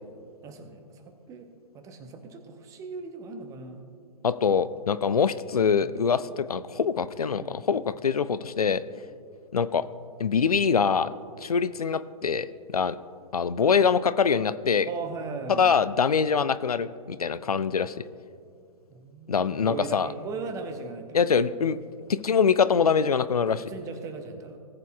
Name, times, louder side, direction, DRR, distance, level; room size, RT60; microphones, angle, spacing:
voice 1, 0.4-1.5 1.7-3.8 5.8-6.0 7.4-7.6 14.8-15.7 18.9-21.4 23.5-24.6, right 4 dB, 15° right, 7 dB, 0.8 m, -38 dB
voice 2, 4.2-8.8 9.5-9.8 10.2-11.1 11.4-12.5 12.7-13.0 13.3-14.9 15.5-17.9 19.3-20.1 21.1-21.8 22.1-23.6, left 6 dB, 75° left, 15 dB, 0.4 m, -24 dB
19.0 x 8.2 x 2.3 m, 2.4 s
figure-of-eight pair, 120°, 20 cm